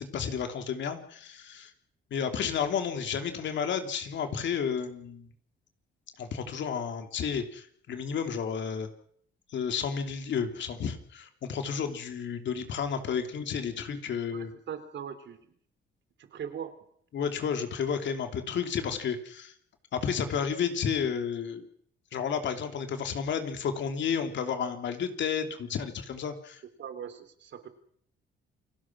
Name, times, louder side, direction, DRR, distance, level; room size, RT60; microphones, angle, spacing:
voice 1, 0.0-1.7 2.1-5.3 6.2-8.9 9.5-14.5 17.1-19.5 19.9-21.7 22.1-26.6, left 7 dB, 65° left, 7 dB, 3.1 m, -32 dB
voice 2, 14.3-15.4 16.2-16.8 26.8-27.7, right 8 dB, 65° right, 10 dB, 3.2 m, -40 dB
29.0 x 19.0 x 6.1 m, 0.63 s
cardioid pair, 90°, 20 cm